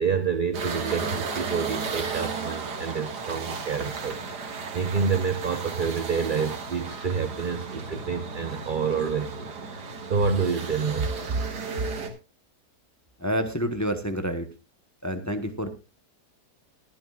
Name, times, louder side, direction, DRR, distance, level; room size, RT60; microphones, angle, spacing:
voice 1, 0.0-11.4, right 5 dB, 45° right, 10 dB, 0.7 m, -28 dB
sound 1, 0.5-12.1, right 4 dB, 80° right, 2.2 m, -34 dB
voice 2, 13.2-14.5 15.0-15.7, equal, 15° left, 7 dB, 0.8 m, -28 dB
21.5 x 9.8 x 2.3 m, 0.28 s
omnidirectional pair, 1.7 m